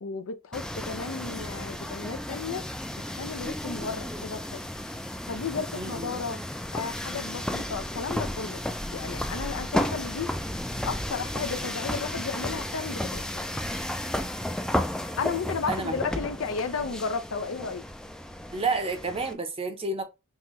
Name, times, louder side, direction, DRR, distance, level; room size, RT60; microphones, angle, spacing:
voice 1, 0.0-2.7 3.1-4.6 5.3-6.4 6.7-8.6 8.9-10.3 10.8-13.3 15.0-17.8, left 5 dB, 70° left, 0.5 m, -33 dB
sound 1, 0.5-19.3, left 1 dB, 5° left, 0.3 m, -33 dB
voice 2, 5.7-6.1 15.7-15.9 18.5-20.0, right 3 dB, 30° right, 0.7 m, -30 dB
5.5 x 2.2 x 3.1 m
head